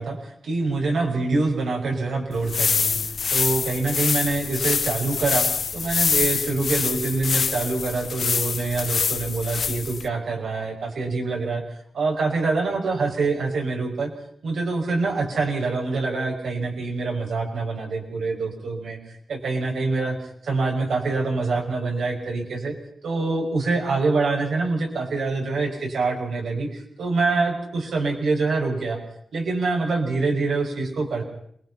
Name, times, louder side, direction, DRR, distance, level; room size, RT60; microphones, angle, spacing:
voice 1, 0.0-3.0 3.3-5.5 5.7-11.6 11.9-14.1 14.4-19.0 19.3-20.2 20.4-22.7 23.0-29.0 29.3-31.2, right 3 dB, 85° right, 1 dB, 6.5 m, -25 dB
sound 1, 2.3-10.1, left 6 dB, 60° left, 0.9 m, -25 dB
28.0 x 22.0 x 5.8 m, 0.67 s
wide cardioid pair, 125°, 0 cm